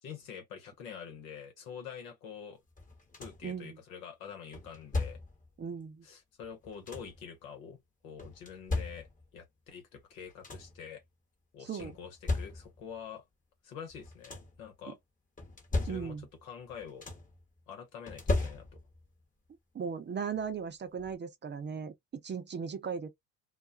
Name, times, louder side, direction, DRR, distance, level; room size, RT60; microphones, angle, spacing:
voice 1, 0.0-2.6 3.2-5.2 6.0-11.0 11.5-13.2 13.6-15.0 15.8-16.2 16.4-17.1 17.7-18.8, left 7 dB, 85° left, 1.0 m, -46 dB
sound 1, 2.8-3.6 4.5-5.5 6.4-7.3 8.2-9.4 10.0-10.1 10.3-10.9 11.8-12.9 13.9-14.7 15.4-16.4 16.7-17.4 18.1-19.1 20.4-20.5 21.0-21.2, left 2 dB, 20° left, 0.9 m, -36 dB
voice 2, 3.4-3.8 5.6-6.1 11.6-11.9 14.9-15.0 15.9-16.2 19.7-23.1, right 6 dB, 25° right, 0.6 m, -37 dB
2.3 x 2.2 x 2.4 m
hypercardioid pair, 70°, 40 cm